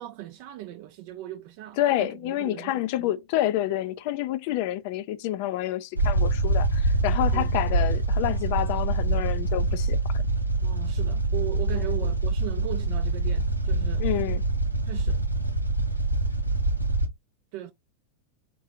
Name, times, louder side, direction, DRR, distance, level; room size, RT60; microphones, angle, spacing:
voice 1, 0.0-3.1 7.3-7.6 10.6-14.0 14.9-15.2 17.5-17.7, right 14 dB, 45° right, 0.4 m, -38 dB
voice 2, 1.8-10.0 11.7-11.8 14.0-14.4, left 13 dB, 45° left, 0.4 m, -28 dB
sound 1, 5.9-17.1, right 2 dB, 85° right, 0.6 m, -25 dB
3.6 x 3.0 x 2.7 m
figure-of-eight pair, 90°, 0 cm